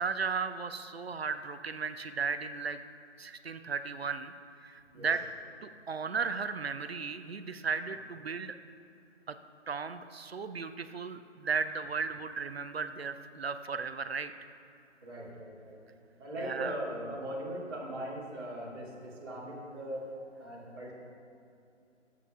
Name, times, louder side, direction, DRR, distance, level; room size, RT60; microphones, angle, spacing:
voice 1, 0.0-2.8 3.2-4.3 4.6-5.2 5.6-8.6 9.3-9.4 9.7-14.3 16.4-16.7, right 5 dB, 55° right, 10 dB, 0.6 m, -35 dB
voice 2, 15.0-15.8 16.2-20.0 20.4-20.9, right 1 dB, 20° right, -9 dB, 2.3 m, -39 dB
22.0 x 8.6 x 2.5 m, 2.6 s
figure-of-eight pair, 155°, 36 cm